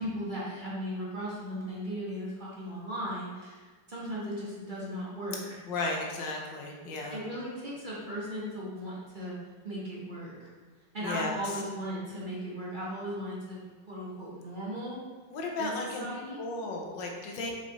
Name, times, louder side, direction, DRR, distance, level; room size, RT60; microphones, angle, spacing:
voice 1, 0.0-5.6 7.1-9.4 9.6-10.5 10.9-15.0 15.6-16.4, equal, 30° right, -6 dB, 1.2 m, -37 dB
voice 2, 5.7-7.2 11.0-11.6 15.3-16.1 16.4-17.5, left 2 dB, 90° left, 0 dB, 1.7 m, -34 dB
5.7 x 4.9 x 3.9 m, 1.4 s
omnidirectional pair, 2.0 m